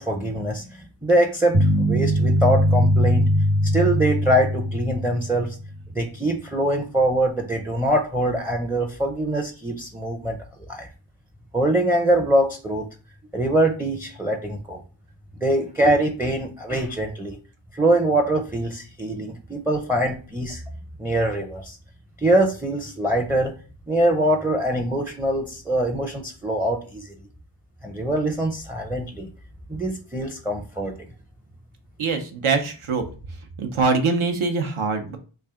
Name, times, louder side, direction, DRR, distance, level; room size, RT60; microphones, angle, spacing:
voice 1, 0.0-3.3 3.6-5.6 5.9-10.4 10.7-10.9 11.5-12.9 13.3-14.8 15.4-17.4 17.7-20.6 21.0-21.8 22.2-23.5 23.9-27.1 27.8-29.3 29.7-30.9, right 1 dB, 5° right, 3 dB, 0.4 m, -23 dB
sound 1, 1.5-5.7, equal, 45° right, 1.1 m, -21 dB
voice 2, 32.0-33.1 33.6-35.2, right 4 dB, 75° right, 5 dB, 0.8 m, -23 dB
3.2 x 2.6 x 3.5 m, 0.37 s
wide cardioid pair, 70°, 49 cm